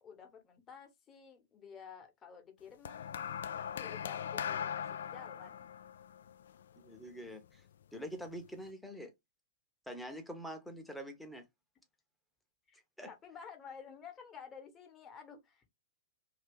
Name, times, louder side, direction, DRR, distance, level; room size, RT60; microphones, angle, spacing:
voice 1, 0.0-3.1 3.5-5.7 9.9-10.0 12.7-12.8 13.1-15.7, left 6 dB, 25° left, 1.2 m, -52 dB
sound 1, 2.9-7.3 8.2-8.5, left 8 dB, 65° left, 0.3 m, -40 dB
voice 2, 6.8-7.6 7.9-9.1 9.9-11.4 13.0-13.1, equal, ahead, 0.9 m, -45 dB
2.8 x 2.8 x 3.4 m
figure-of-eight pair, 105°, 0 cm